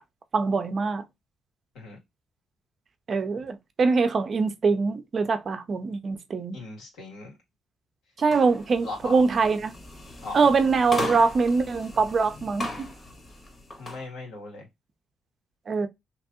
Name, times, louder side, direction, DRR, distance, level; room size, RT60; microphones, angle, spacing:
voice 1, 0.3-1.0 3.1-6.6 8.2-9.7 10.3-12.9 15.7-15.9, right 4 dB, 45° right, 0.6 m, -23 dB
voice 2, 6.5-7.4 8.8-9.1 10.2-10.5 13.8-14.7, left 3 dB, 85° left, 1.8 m, -38 dB
sound 1, 8.2-14.0, left 2 dB, 35° left, 1.2 m, -37 dB
3.0 x 2.6 x 3.6 m
cardioid pair, 90°, 0 cm